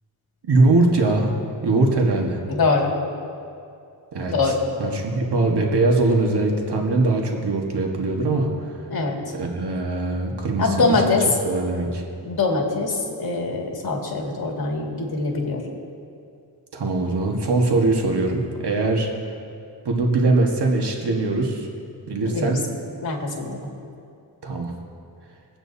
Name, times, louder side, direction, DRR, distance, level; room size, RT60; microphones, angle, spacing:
voice 1, 0.4-1.3 1.6-2.4 4.1-4.3 4.8-8.5 9.4-11.1 11.4-12.0 16.7-19.1 19.8-21.7 22.1-22.6 24.4-24.7, right 2 dB, 70° right, 0 dB, 1.6 m, -21 dB
voice 2, 2.5-2.9 4.3-4.6 8.9-9.2 10.6-11.3 12.2-15.6 22.2-22.5 23.0-23.7, left 3 dB, 60° left, -1 dB, 2.2 m, -23 dB
23.5 x 8.8 x 2.8 m, 2.5 s
wide cardioid pair, 85°, 42 cm